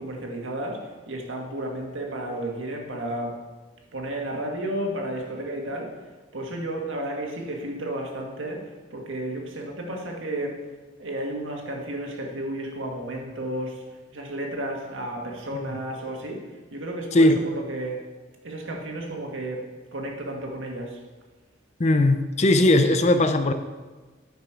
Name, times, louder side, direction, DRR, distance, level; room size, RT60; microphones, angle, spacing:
voice 1, 0.0-3.4 3.9-6.0 6.3-10.6 11.0-13.8 14.1-18.0 18.4-21.0, right 1 dB, 85° right, 1 dB, 1.6 m, -32 dB
voice 2, 21.8-23.5, left 1 dB, 35° left, 9 dB, 0.5 m, -18 dB
9.5 x 6.0 x 4.6 m, 1.3 s
head